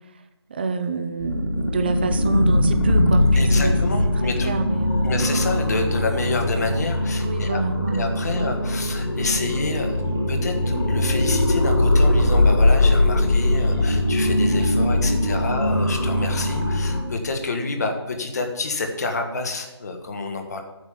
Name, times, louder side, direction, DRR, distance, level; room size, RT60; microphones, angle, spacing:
voice 1, 0.5-3.8 4.4-5.2 6.4-6.7 7.2-8.1 8.3-8.5 15.2-15.8, right 3 dB, 20° right, 8 dB, 0.7 m, -28 dB
sound 1, 1.2-17.0, left 1 dB, 55° left, 3.4 m, -21 dB
voice 2, 3.3-4.5 5.0-7.6 7.9-10.0 10.3-20.6, left 3 dB, 35° left, 4 dB, 1.6 m, -28 dB
7.9 x 7.3 x 8.3 m, 1.0 s
figure-of-eight pair, 160°, 14 cm